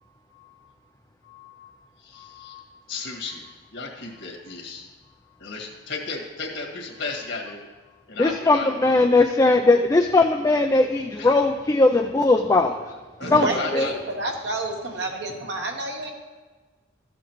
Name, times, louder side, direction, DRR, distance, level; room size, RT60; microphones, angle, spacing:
voice 1, 0.3-0.7 1.2-1.7 2.0-7.7 8.1-8.9 11.2-11.4 13.2-13.9 15.0-15.2, left 4 dB, 65° left, 0 dB, 1.8 m, -36 dB
voice 2, 8.2-12.9 13.3-13.5 13.7-13.9, left 2 dB, 15° left, 3 dB, 0.3 m, -19 dB
voice 3, 13.2-16.1, right 2 dB, 60° right, 1 dB, 1.1 m, -29 dB
13.5 x 7.3 x 3.0 m, 1.3 s
head